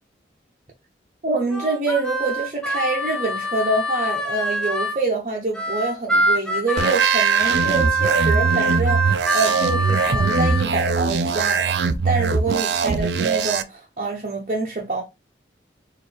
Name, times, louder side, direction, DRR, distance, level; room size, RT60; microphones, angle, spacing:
voice 1, 1.2-15.0, right 3 dB, 40° right, 0.7 m, -26 dB
Harmonica, 1.5-5.0 5.5-10.6, right 2 dB, 5° left, 0.6 m, -24 dB
sound 1, 6.8-13.6, right 5 dB, 75° right, 0.4 m, -22 dB
4.2 x 2.6 x 3.2 m
head